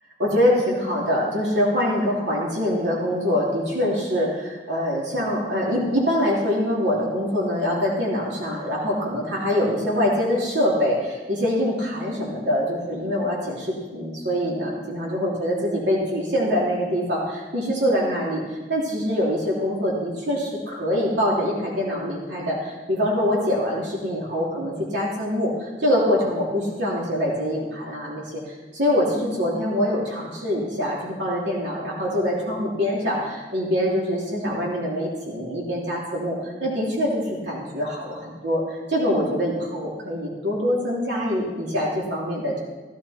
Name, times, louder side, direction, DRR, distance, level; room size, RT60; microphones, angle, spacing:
voice 1, 0.2-42.6, equal, 80° right, -4 dB, 3.1 m, -24 dB
15.5 x 14.5 x 4.3 m, 1.3 s
head